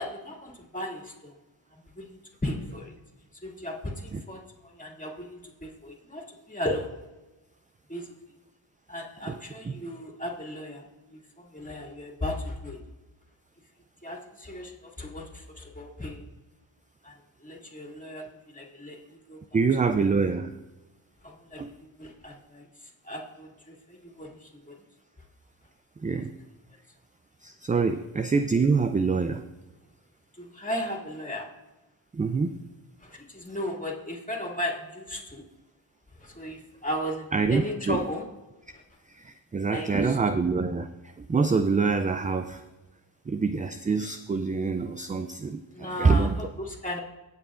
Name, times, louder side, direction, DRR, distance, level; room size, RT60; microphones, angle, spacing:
voice 1, 0.0-1.3 1.7-2.9 3.4-6.9 7.9-8.1 8.9-10.8 11.1-12.8 14.0-16.2 17.0-17.1 17.4-19.0 19.3-19.4 21.2-24.8 26.1-26.2 27.8-28.0 30.3-31.5 33.0-35.4 36.2-38.2 39.7-40.2 45.7-47.0, left 1 dB, 15° left, -1 dB, 2.4 m, -36 dB
voice 2, 9.2-9.8 19.5-20.6 21.6-21.7 26.0-26.4 27.4-29.5 32.1-32.6 37.3-38.1 39.0-42.6 43.3-46.4, right 4 dB, 20° right, 9 dB, 0.4 m, -26 dB
16.0 x 7.0 x 2.5 m, 1.1 s
cardioid pair, 55°, 47 cm